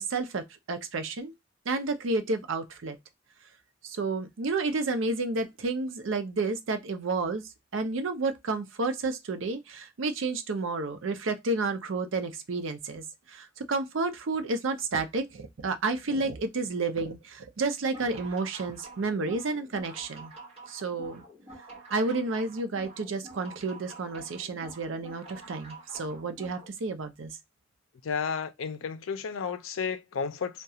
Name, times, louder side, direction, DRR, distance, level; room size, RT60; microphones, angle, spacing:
voice 1, 0.0-1.3 1.7-3.0 3.8-7.4 7.7-20.3 20.7-21.2 21.9-27.3, right 3 dB, 75° right, 0.5 m, -31 dB
sound 1, 17.8-26.7, right 3 dB, 30° right, 1.0 m, -48 dB
voice 2, 28.0-30.6, left 6 dB, 80° left, 0.4 m, -32 dB
2.3 x 2.2 x 2.6 m
head